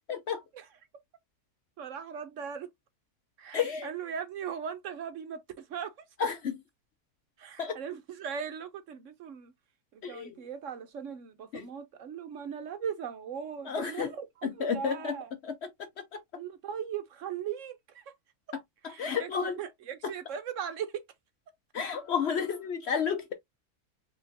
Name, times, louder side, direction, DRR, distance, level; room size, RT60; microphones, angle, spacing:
voice 1, 0.1-0.4 3.5-3.9 6.2-6.6 7.6-7.8 10.0-10.3 11.5-11.6 13.7-14.1 14.6-15.1 19.0-19.6 21.7-23.3, left 6 dB, 60° left, 0.7 m, -31 dB
voice 2, 1.8-2.7 3.4-5.9 7.4-9.5 9.9-15.3 16.3-18.1 18.8-21.0, right 7 dB, 65° right, 0.9 m, -39 dB
5.4 x 3.0 x 2.6 m
omnidirectional pair, 1.6 m